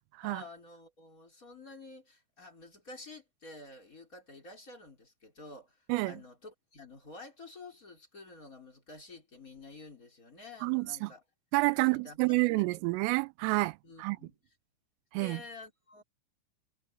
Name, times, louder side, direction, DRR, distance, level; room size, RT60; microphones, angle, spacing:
voice 1, 0.2-11.2 11.8-12.7 13.8-14.3 15.1-16.0, left 3 dB, 15° left, 4.0 m, -50 dB
voice 2, 5.9-6.2 10.6-11.1 11.5-14.2 15.1-15.4, right 24 dB, 85° right, 3.1 m, -29 dB
omnidirectional pair, 6.0 m